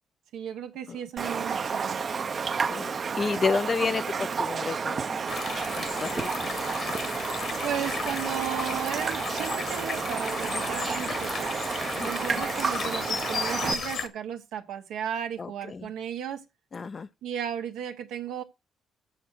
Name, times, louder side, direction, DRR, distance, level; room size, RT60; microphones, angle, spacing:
voice 1, 0.3-2.0 7.6-11.5 12.0-16.4 17.2-18.4, right 9 dB, 90° right, 1.2 m, -35 dB
Raindrop, 1.2-13.7, right 5 dB, 45° right, 0.6 m, -31 dB
voice 2, 2.7-5.2 5.8-6.5 12.0-12.4 15.4-15.9 16.7-17.1, left 4 dB, 40° left, 0.4 m, -31 dB
sound 1, 5.3-14.1, left 5 dB, 60° left, 1.4 m, -34 dB
7.4 x 7.1 x 6.3 m
cardioid pair, 90°, 0 cm